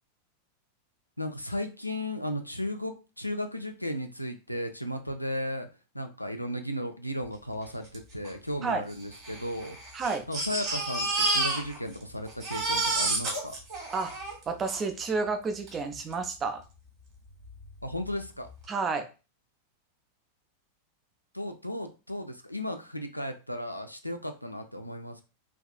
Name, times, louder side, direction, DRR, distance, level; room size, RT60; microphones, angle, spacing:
voice 1, 1.2-5.7 5.9-9.8 10.3-13.6 17.8-18.5 21.3-25.2, left 1 dB, 90° left, 6 dB, 0.3 m, -35 dB
Crying sobbing, 7.9-8.0 8.2-8.3 9.1-12.0 12.3-14.8 15.7-15.8 16.1-16.2, right 2 dB, 40° right, 1.4 m, -30 dB
voice 2, 9.9-10.2 13.9-14.1 14.5-16.6 18.7-19.1, right 4 dB, 25° right, 7 dB, 0.5 m, -30 dB
3.4 x 2.5 x 2.2 m, 0.32 s
figure-of-eight pair, 90°, 0 cm